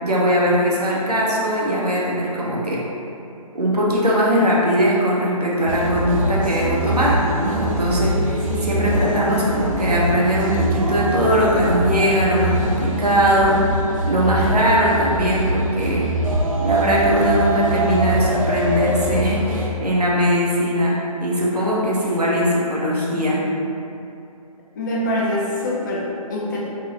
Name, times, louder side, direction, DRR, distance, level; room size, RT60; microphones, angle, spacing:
voice 1, 0.0-2.8 3.5-16.1 16.6-23.4, equal, 90° right, -5 dB, 0.8 m, -20 dB
sound 1, 5.7-19.7, right 1 dB, 60° right, 0.5 m, -23 dB
voice 2, 8.5-8.9 22.2-22.3 24.7-26.6, left 1 dB, 30° left, -5 dB, 0.5 m, -25 dB
3.0 x 2.9 x 2.4 m, 2.7 s
figure-of-eight pair, 145°, 19 cm